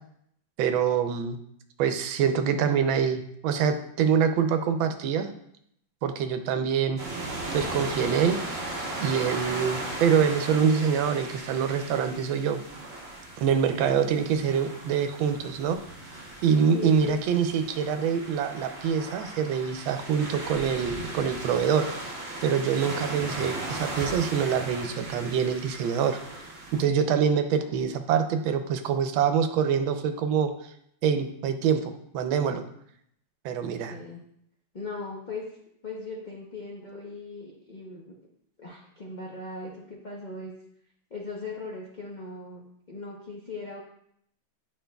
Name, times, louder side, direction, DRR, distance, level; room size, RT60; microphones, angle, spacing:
voice 1, 0.6-1.4 1.8-5.3 6.0-7.0 7.5-8.4 9.0-12.6 13.4-15.8 16.4-21.9 22.4-26.2 26.7-30.5 31.0-32.6 33.4-34.0, right 7 dB, 85° right, 8 dB, 1.4 m, -25 dB
sound 1, 7.0-26.8, right 2 dB, 45° right, 1.3 m, -37 dB
voice 2, 13.7-14.1 16.7-17.2 27.6-27.9 33.9-34.2 34.7-35.5 35.8-38.0 38.6-40.5 41.1-42.6 42.9-43.8, left 3 dB, 85° left, -3 dB, 0.4 m, -38 dB
8.7 x 5.1 x 2.3 m, 0.72 s
omnidirectional pair, 2.1 m